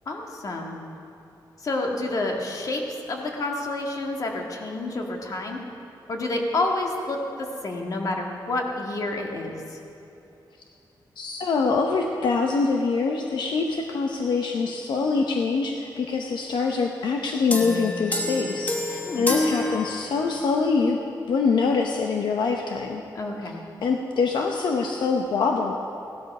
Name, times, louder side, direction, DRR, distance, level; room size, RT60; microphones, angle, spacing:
voice 1, 0.1-0.8 1.6-2.8 3.1-5.6 6.1-9.8 19.1-19.3 23.1-23.6, left 2 dB, 50° left, 1 dB, 1.9 m, -29 dB
voice 2, 11.2-21.0 21.3-23.0 23.8-25.8, left 4 dB, 80° left, 2 dB, 0.9 m, -24 dB
sound 1, 17.5-20.5, left 1 dB, 20° left, 1.3 m, -28 dB
16.5 x 12.5 x 5.5 m, 2.8 s
wide cardioid pair, 140°, 8 cm